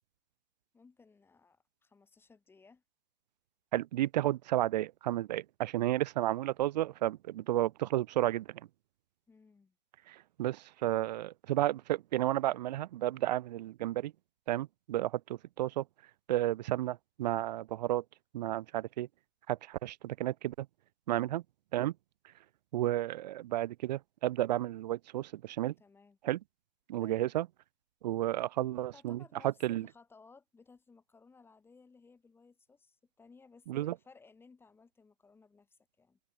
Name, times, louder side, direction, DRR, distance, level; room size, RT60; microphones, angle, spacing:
voice 1, 0.7-2.8 9.3-9.7 21.1-21.3 25.8-26.2 26.9-27.2 28.3-36.2, left 4 dB, 5° left, 4.2 m, -60 dB
voice 2, 3.7-8.5 10.1-14.1 14.5-15.2 15.6-15.8 16.3-18.0 18.3-19.1 19.5-20.7 21.1-21.4 21.7-21.9 22.7-25.7 26.2-26.4 26.9-27.5 28.0-29.9 33.7-33.9, right 14 dB, 45° right, 1.0 m, -32 dB
hypercardioid pair, 150°, 30 cm